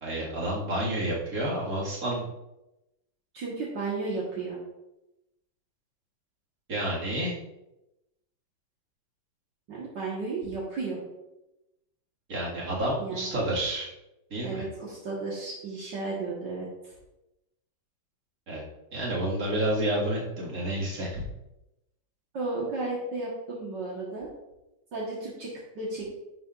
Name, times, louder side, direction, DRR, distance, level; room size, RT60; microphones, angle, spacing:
voice 1, 0.0-2.3 6.7-7.4 12.3-13.9 14.3-14.6 18.5-18.6 18.9-21.2, right 1 dB, 50° right, -5 dB, 2.5 m, -29 dB
voice 2, 3.3-4.6 9.7-11.0 13.0-13.3 14.4-16.9 22.3-24.3 24.9-25.5 25.8-26.1, right 3 dB, 70° right, -5 dB, 2.2 m, -33 dB
11.0 x 6.9 x 2.5 m, 0.93 s
omnidirectional pair, 2.0 m